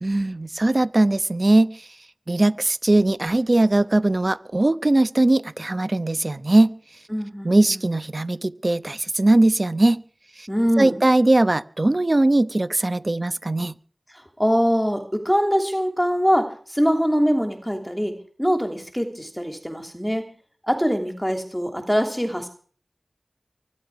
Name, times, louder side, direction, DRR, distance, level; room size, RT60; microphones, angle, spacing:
voice 1, 0.0-1.9 2.3-6.7 7.4-10.0 10.4-10.5 10.8-13.7, right 2 dB, 45° right, 14 dB, 1.0 m, -20 dB
voice 2, 7.1-7.8 10.5-11.0 14.1-20.3 20.6-22.5, equal, 5° left, 5 dB, 2.9 m, -23 dB
24.0 x 10.5 x 4.8 m, 0.44 s
wide cardioid pair, 45°, 0 cm